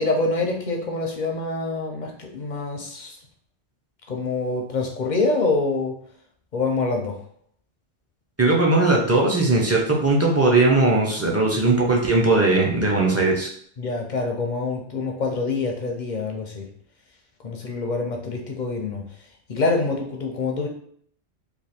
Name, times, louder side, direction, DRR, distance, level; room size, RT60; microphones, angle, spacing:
voice 1, 0.0-3.2 4.1-5.9 6.5-7.2 13.8-16.7 17.4-19.0 19.5-20.7, left 3 dB, 50° left, 2 dB, 0.6 m, -25 dB
voice 2, 8.4-13.5, right 2 dB, 20° right, -2 dB, 0.5 m, -19 dB
3.3 x 2.3 x 4.2 m, 0.62 s
omnidirectional pair, 1.2 m